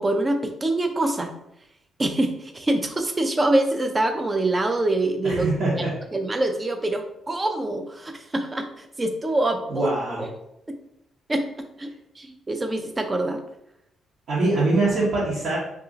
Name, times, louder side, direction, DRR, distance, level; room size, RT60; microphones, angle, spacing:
voice 1, 0.0-1.3 2.0-5.5 5.8-5.9 6.1-9.9 10.2-10.3 11.3-13.4, right 2 dB, 25° right, 6 dB, 0.5 m, -25 dB
voice 2, 5.2-6.0 9.7-10.3 14.3-15.6, right 2 dB, 65° right, -9 dB, 1.1 m, -23 dB
2.6 x 2.4 x 3.8 m, 0.81 s
cardioid pair, 90°, 0 cm